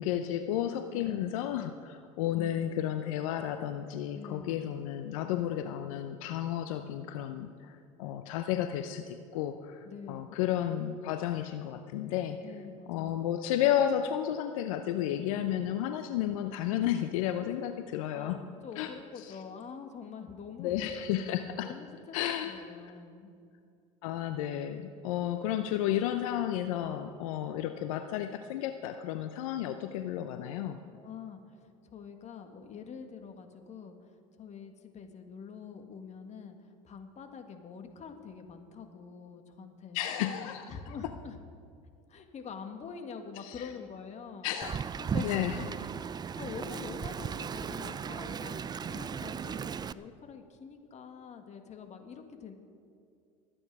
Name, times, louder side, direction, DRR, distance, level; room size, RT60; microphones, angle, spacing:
voice 1, 0.0-12.4 12.9-18.4 18.8-18.9 19.2-19.4 20.6-21.7 22.1-22.6 24.0-30.8 39.9-40.9 43.4-43.7 44.4-44.8 45.2-45.6, left 11 dB, 80° left, 8 dB, 0.7 m, -32 dB
voice 2, 0.9-1.3 2.3-2.6 4.1-4.7 9.8-10.4 12.4-13.3 18.1-20.8 21.6-23.3 26.8-26.9 30.9-34.0 34.4-36.6 36.8-40.1 40.7-41.4 42.1-44.5 45.0-45.6 46.0-52.5, left 6 dB, 40° left, 6 dB, 1.9 m, -45 dB
Wind, 44.6-49.9, right 7 dB, 25° right, 0.4 m, -36 dB
22.5 x 9.0 x 4.8 m, 2.4 s
hypercardioid pair, 80°, 17 cm